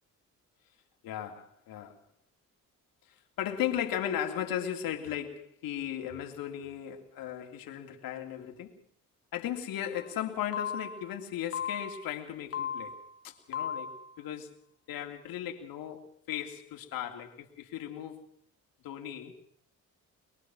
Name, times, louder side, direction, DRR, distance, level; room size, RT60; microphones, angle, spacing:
voice 1, 1.0-2.0 3.4-8.8 9.3-12.9 13.2-14.5 14.9-18.3 18.8-19.3, left 10 dB, 85° left, 3.2 m, -36 dB
sound 1, 9.9-10.1 10.5-11.1 11.5-12.1 12.5-13.1 13.5-14.1, left 7 dB, 40° left, 2.5 m, -36 dB
23.5 x 22.5 x 6.3 m
cardioid pair, 95°, 34 cm